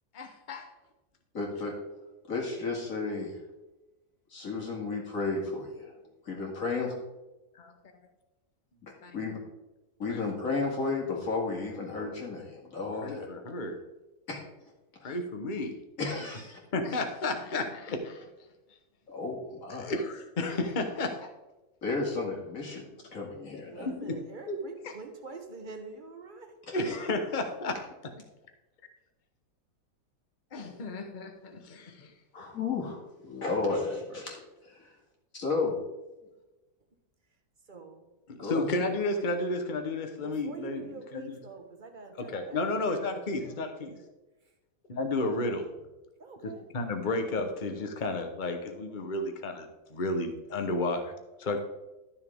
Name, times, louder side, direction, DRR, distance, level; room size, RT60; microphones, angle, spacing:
voice 1, 0.1-0.7 7.5-7.7 9.0-9.2 10.1-10.2 13.0-13.8 15.0-15.7 16.7-18.3 19.8-21.3 23.8-24.2 24.5-24.6 26.7-27.8 30.5-32.1 38.3-40.8 41.1-41.4 42.2-44.0 44.9-45.6 46.4-51.1 51.4-51.6, left 2 dB, 35° left, 5 dB, 1.1 m, -32 dB
voice 2, 1.3-1.7 2.3-3.4 4.3-6.0 6.2-7.0 8.8-9.4 10.0-13.3 14.3-14.4 15.0-15.1 16.0-16.6 19.1-20.0 21.8-23.9 26.8-27.0 32.3-34.9 35.3-35.8 38.4-38.8, left 3 dB, 60° left, -1 dB, 2.7 m, -33 dB
voice 3, 23.7-26.6 37.7-38.1 40.2-42.7 43.4-44.1 46.2-46.7, right 4 dB, 35° right, 4 dB, 1.4 m, -45 dB
12.5 x 7.0 x 3.6 m, 1.1 s
omnidirectional pair, 1.6 m